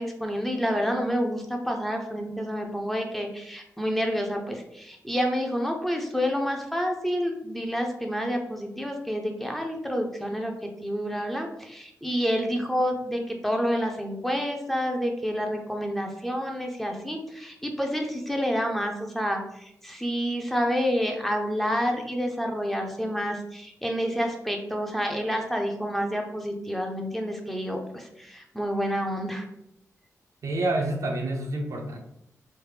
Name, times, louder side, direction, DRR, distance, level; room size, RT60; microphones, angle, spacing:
voice 1, 0.0-10.5 10.8-29.5, equal, 5° left, 2 dB, 0.5 m, -28 dB
voice 2, 30.4-32.0, right 2 dB, 65° right, 2 dB, 0.5 m, -28 dB
3.2 x 2.0 x 3.2 m, 0.78 s
cardioid pair, 75°, 6 cm